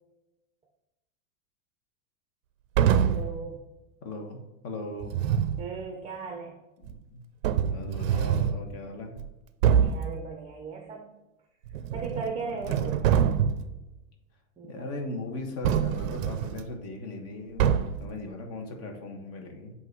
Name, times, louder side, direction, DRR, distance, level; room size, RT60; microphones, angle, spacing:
sound 1, 2.7-3.4 5.0-5.6 6.9-7.0 7.4-8.6 9.2-9.3 9.6-10.1 11.7-12.3 12.6-13.7 15.6-16.6 17.6-18.1, right 8 dB, 85° right, 0.6 m, -25 dB
voice 1, 3.1-3.6 5.6-6.6 9.8-11.1 11.9-13.0 14.6-14.8, right 4 dB, 15° right, 3 dB, 0.7 m, -37 dB
voice 2, 4.0-5.1 6.8-7.2 7.7-9.1 12.4-13.1 14.6-19.7, left 2 dB, 40° left, 2 dB, 1.4 m, -38 dB
7.7 x 2.8 x 4.6 m, 1.0 s
supercardioid pair, 130°, 39 cm